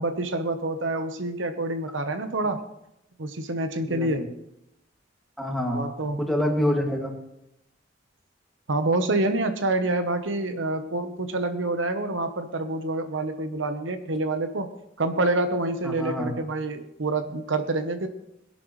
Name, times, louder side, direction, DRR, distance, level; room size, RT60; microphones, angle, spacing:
voice 1, 0.0-2.7 3.2-4.3 5.7-6.2 8.7-14.7 15.0-18.1, right 2 dB, 85° right, 8 dB, 1.1 m, -27 dB
voice 2, 3.9-4.3 5.4-5.9 6.2-7.1 15.8-16.3, equal, ahead, 0 dB, 2.2 m, -26 dB
20.5 x 11.5 x 3.2 m, 0.82 s
head